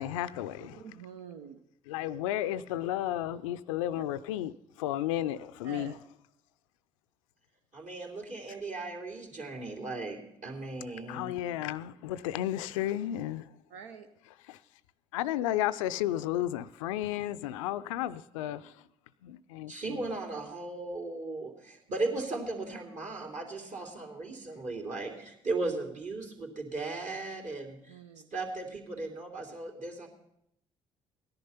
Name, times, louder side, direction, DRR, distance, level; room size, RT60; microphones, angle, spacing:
voice 1, 0.0-0.8 1.9-4.5 4.8-5.9 11.1-13.5 14.5-14.6 15.1-18.7 19.2-20.0, left 13 dB, 80° left, 0.4 m, -33 dB
voice 2, 0.6-1.6 4.0-4.1 5.6-6.0 13.7-14.1 27.9-28.3, right 6 dB, 80° right, 0.7 m, -46 dB
voice 3, 7.7-11.3 19.7-28.0 28.3-30.1, right 3 dB, 45° right, 3.1 m, -37 dB
16.5 x 10.5 x 5.7 m
hypercardioid pair, 50°, 17 cm